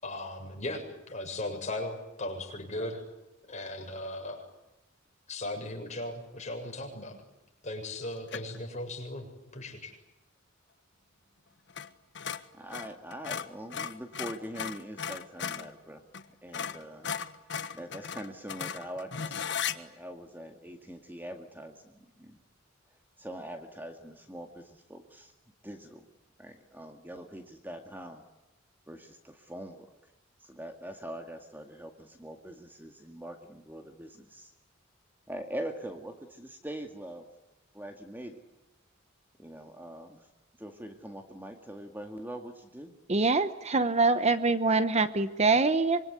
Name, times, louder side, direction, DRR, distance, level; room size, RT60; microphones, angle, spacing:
voice 1, 0.0-3.0 3.5-4.5 5.3-7.2 7.6-10.0, left 1 dB, 35° left, 2 dB, 7.3 m, -37 dB
sound 1, 8.3-8.6 11.7-11.9 12.1-15.7 16.1-16.2 16.5-19.8, left 7 dB, 60° left, 1.4 m, -36 dB
voice 2, 12.5-16.0 16.4-17.1 17.7-22.4 23.2-25.3 25.6-26.1 26.4-28.2 28.9-29.9 30.4-34.5 35.3-37.3 37.7-38.4 39.4-40.3 40.6-42.9, right 1 dB, 10° right, 4 dB, 2.0 m, -43 dB
voice 3, 43.1-46.0, right 3 dB, 35° right, 12 dB, 0.9 m, -24 dB
26.0 x 23.5 x 9.8 m, 0.97 s
head